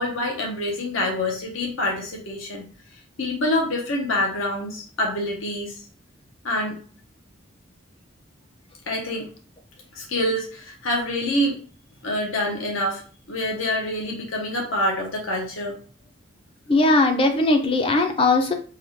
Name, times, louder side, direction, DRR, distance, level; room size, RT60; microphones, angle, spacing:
voice 1, 0.0-2.7 3.2-5.7 6.4-6.8 8.9-9.3 9.9-11.6 12.0-13.0 13.3-15.8, left 1 dB, 80° left, 0 dB, 0.8 m, -26 dB
voice 2, 16.7-18.5, left 2 dB, 25° left, 5 dB, 0.4 m, -19 dB
3.8 x 2.3 x 3.2 m, 0.40 s
head